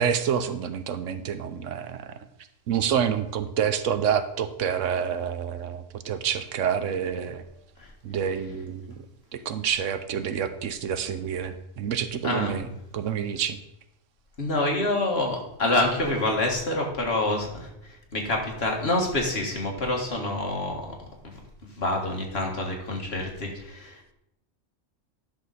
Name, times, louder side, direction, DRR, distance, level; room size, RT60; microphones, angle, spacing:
voice 1, 0.0-2.1 2.7-7.4 8.0-9.0 9.3-12.7 12.9-13.6, right 8 dB, 75° right, 11 dB, 1.0 m, -28 dB
voice 2, 14.4-17.7 18.1-20.8 21.8-23.9, left 2 dB, 50° left, 0 dB, 1.9 m, -26 dB
10.5 x 6.3 x 4.1 m, 0.82 s
omnidirectional pair, 1.3 m